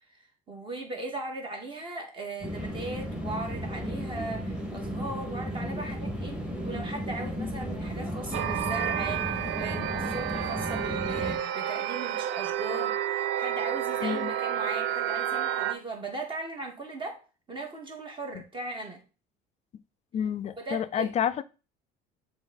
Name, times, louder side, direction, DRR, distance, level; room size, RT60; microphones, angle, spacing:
voice 1, 0.5-17.2 17.5-19.0 20.6-21.1, right 2 dB, 25° right, 1.9 m, -38 dB
sound 1, 2.4-11.4, equal, 5° right, 1.9 m, -34 dB
sound 2, 8.3-15.7, right 10 dB, 90° right, 0.5 m, -30 dB
voice 2, 20.1-21.4, left 9 dB, 35° left, 0.4 m, -29 dB
7.1 x 3.3 x 4.0 m
cardioid pair, 125°, 19 cm